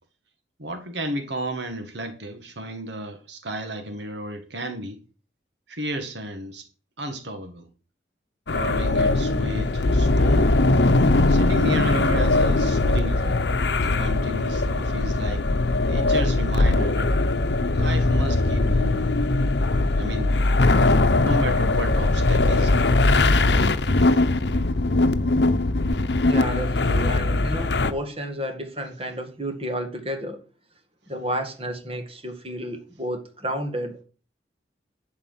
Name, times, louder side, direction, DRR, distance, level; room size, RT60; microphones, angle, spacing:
voice 1, 0.6-5.0 5.7-6.7 7.0-7.7 8.5-10.6 11.3-13.4 13.8-15.5 15.9-17.2 17.7-19.2 20.0-20.4 21.2-23.0 23.6-24.2, right 1 dB, 75° right, 1.7 m, -33 dB
sound 1, 8.5-27.9, left 2 dB, 70° left, 0.8 m, -20 dB
voice 2, 26.3-30.4 31.1-34.0, equal, 30° right, 1.9 m, -31 dB
11.5 x 4.7 x 7.9 m
head